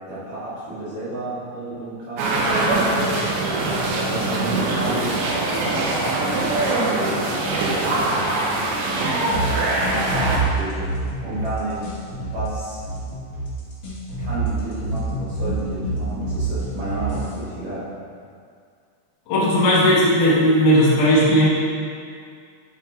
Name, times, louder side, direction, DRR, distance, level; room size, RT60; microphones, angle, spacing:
voice 1, 0.1-2.9 4.0-5.1 5.6-7.8 9.9-10.9 11.2-11.9 12.2-12.8 14.2-17.8, right 2 dB, 60° right, -11 dB, 2.0 m, -31 dB
sound 1, 2.2-10.4, right 2 dB, 90° right, 2.7 m, -22 dB
sound 2, 9.3-17.3, right 2 dB, 65° left, 1.3 m, -27 dB
voice 2, 19.3-21.5, equal, 85° left, -7 dB, 3.2 m, -16 dB
10.5 x 4.4 x 2.4 m, 2.2 s
omnidirectional pair, 4.4 m